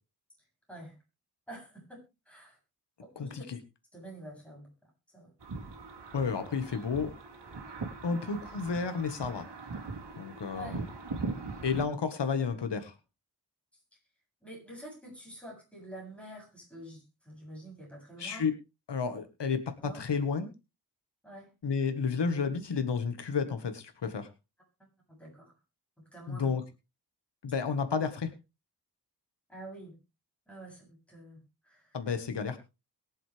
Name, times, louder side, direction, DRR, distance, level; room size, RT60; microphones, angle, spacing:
voice 1, 1.5-2.0 2.3-2.6 3.0-3.4 3.9-4.7 5.1-5.3 8.1-8.3 10.5-10.8 14.4-18.4 19.8-20.0 21.2-21.5 24.8-25.5 26.1-26.5 29.5-30.0 30.5-31.4 31.6-32.0, right 1 dB, 5° left, -2 dB, 7.9 m, -47 dB
voice 2, 3.1-3.6 6.1-7.1 8.0-9.5 10.2-10.8 11.6-12.9 18.2-18.5 18.9-20.5 21.6-24.3 26.3-26.6 27.4-28.3 31.9-32.6, left 5 dB, 85° left, 8 dB, 1.6 m, -31 dB
sound 1, 5.4-11.8, right 4 dB, 85° right, 3.1 m, -41 dB
22.0 x 7.6 x 3.4 m, 0.29 s
wide cardioid pair, 125°, 41 cm